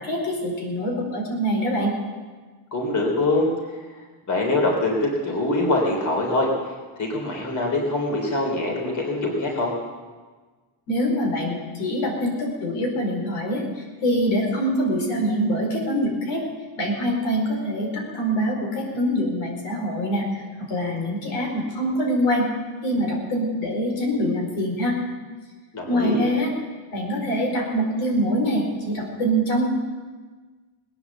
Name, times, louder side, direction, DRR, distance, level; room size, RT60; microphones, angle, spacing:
voice 1, 0.0-2.0 10.9-16.4 16.8-22.5 22.8-25.0 25.9-26.5 26.9-29.7, equal, 85° left, 0 dB, 4.6 m, -24 dB
voice 2, 2.7-3.8 4.3-6.5 7.0-9.7 25.7-26.2, left 2 dB, 40° left, 0 dB, 3.3 m, -24 dB
19.0 x 10.0 x 7.1 m, 1.4 s
cardioid pair, 155°, 48 cm